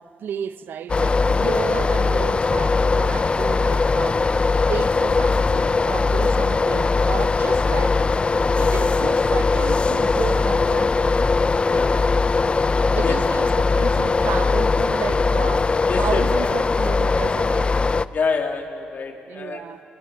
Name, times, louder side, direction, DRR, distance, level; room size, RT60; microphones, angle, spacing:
voice 1, 0.0-8.0 8.5-10.9 12.9-15.7 15.9-17.8 19.3-19.8, right 8 dB, 75° right, 13 dB, 0.8 m, -32 dB
sound 1, 0.9-18.1, left 4 dB, 30° left, 0.5 m, -20 dB
voice 2, 11.6-12.2 13.0-13.2 15.9-16.5 18.1-19.6, left 5 dB, 55° left, 3 dB, 2.5 m, -27 dB
24.0 x 21.0 x 7.2 m, 2.6 s
cardioid pair, 70°, 4 cm